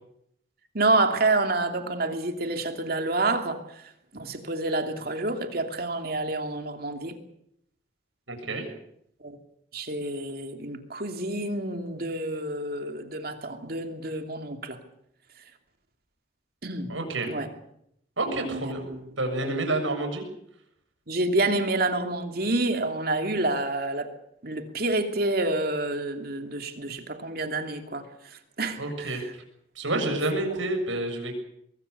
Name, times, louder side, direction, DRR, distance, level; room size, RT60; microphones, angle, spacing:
voice 1, 0.7-3.6 4.1-7.2 9.2-9.4 9.7-14.8 16.6-16.9 17.2-17.5 18.3-19.0 19.4-19.7 21.1-24.1 24.4-28.0 28.6-29.3 29.9-30.2, right 2 dB, 50° right, 6 dB, 2.7 m, -28 dB
voice 2, 8.3-8.6 16.9-17.3 18.2-18.9 19.2-20.2 28.8-29.2 29.7-31.3, right 2 dB, 80° right, 4 dB, 7.0 m, -29 dB
24.5 x 21.0 x 6.9 m, 0.73 s
head